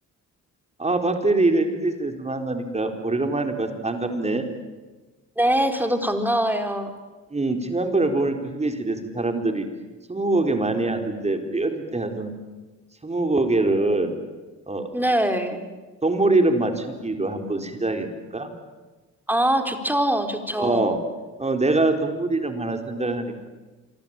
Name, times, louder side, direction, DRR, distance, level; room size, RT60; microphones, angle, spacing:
voice 1, 0.8-4.5 7.3-9.7 10.1-12.3 13.0-14.1 14.7-14.9 16.0-18.5 20.6-21.0 21.4-23.5, right 2 dB, 20° right, 5 dB, 4.1 m, -24 dB
voice 2, 5.4-6.9 14.9-15.6 19.3-20.8, right 1 dB, 5° right, 6 dB, 4.3 m, -23 dB
28.0 x 23.5 x 9.0 m, 1.2 s
cardioid pair, 90°, 30 cm